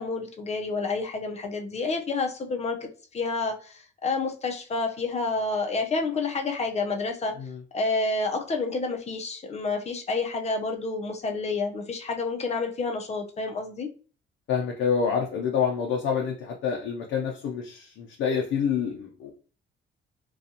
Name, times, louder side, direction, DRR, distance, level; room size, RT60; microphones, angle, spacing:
voice 1, 0.0-7.3 7.7-13.9, left 3 dB, 35° left, 4 dB, 0.6 m, -29 dB
voice 2, 14.5-19.3, left 7 dB, 75° left, 0 dB, 0.5 m, -27 dB
2.5 x 2.3 x 2.7 m, 0.39 s
cardioid pair, 90°, 20 cm